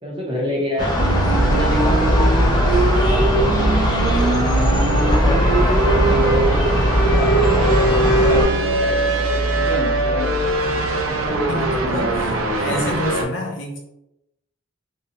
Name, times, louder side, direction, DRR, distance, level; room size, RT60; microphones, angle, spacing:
voice 1, 0.0-0.9 1.4-3.7 4.0-7.7 8.1-10.3 11.0-11.7, equal, 25° right, -3 dB, 0.6 m, -29 dB
sound 1, 0.8-8.5, equal, 20° left, 0.5 m, -19 dB
sound 2, 1.0-13.2, right 2 dB, 85° right, 0.5 m, -21 dB
voice 2, 11.5-13.8, left 1 dB, 65° left, 0 dB, 0.6 m, -28 dB
2.5 x 2.1 x 2.8 m, 0.88 s
head